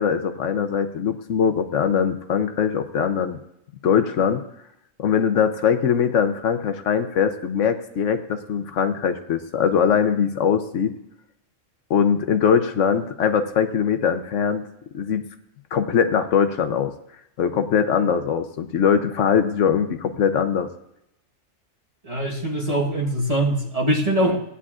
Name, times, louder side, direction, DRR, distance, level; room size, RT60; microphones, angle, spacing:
voice 1, 0.0-3.4 3.8-4.4 5.0-10.9 11.9-14.7 14.9-15.2 15.7-16.9 17.4-20.7, left 7 dB, 75° left, 8 dB, 1.1 m, -21 dB
voice 2, 22.0-24.4, right 1 dB, 30° right, -1 dB, 1.3 m, -22 dB
16.5 x 9.7 x 2.5 m, 0.80 s
omnidirectional pair, 1.3 m